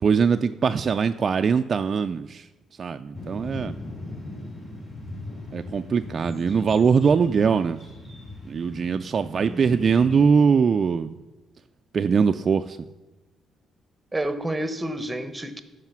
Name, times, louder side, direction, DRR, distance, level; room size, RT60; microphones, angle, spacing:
voice 1, 0.0-2.5 2.8-3.8 5.5-7.8 8.4-11.1 11.9-12.8, right 6 dB, 45° right, 8 dB, 0.3 m, -22 dB
sound 1, 3.1-10.2, left 2 dB, 30° left, 4.1 m, -38 dB
voice 2, 9.2-9.6 14.1-15.6, right 1 dB, 10° right, 11 dB, 0.9 m, -30 dB
13.5 x 4.9 x 6.0 m, 1.1 s
cardioid pair, 90°, 0 cm